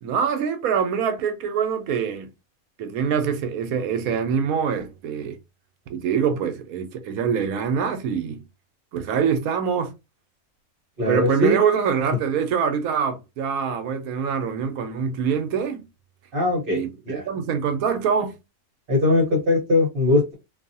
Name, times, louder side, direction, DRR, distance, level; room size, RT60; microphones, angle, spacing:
voice 1, 0.0-2.3 2.8-5.4 5.9-8.4 8.9-9.9 11.1-15.9 16.7-18.4, right 7 dB, 75° right, 1.0 m, -24 dB
voice 2, 11.0-11.6 16.3-17.2 18.9-20.3, left 2 dB, 40° right, 1.0 m, -21 dB
2.7 x 2.6 x 2.6 m
omnidirectional pair, 1.6 m